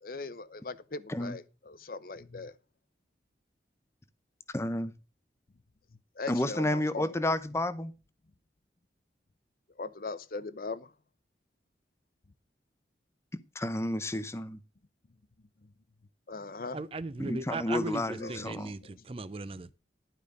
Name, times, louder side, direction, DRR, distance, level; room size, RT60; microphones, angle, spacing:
voice 1, 0.0-2.5 6.2-7.2 9.8-10.9 16.3-16.8 18.2-18.5, left 3 dB, 50° left, 0.7 m, -39 dB
voice 2, 4.5-4.9 6.3-7.9 13.5-14.6 17.2-18.7, left 1 dB, 15° left, 0.7 m, -31 dB
voice 3, 16.7-19.7, right 3 dB, 30° right, 0.5 m, -37 dB
11.5 x 5.1 x 6.5 m
head